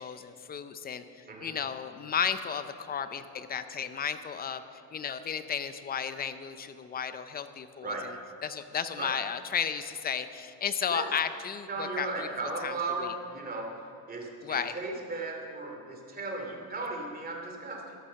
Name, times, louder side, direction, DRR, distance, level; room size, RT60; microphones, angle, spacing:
voice 1, 0.0-4.6 4.9-8.0 8.4-12.3 12.6-12.7 14.4-14.8, left 7 dB, 20° left, 11 dB, 0.5 m, -33 dB
voice 2, 11.7-18.0, right 3 dB, 20° right, 1 dB, 2.7 m, -36 dB
14.5 x 11.0 x 6.4 m, 2.7 s
cardioid pair, 140°, 48 cm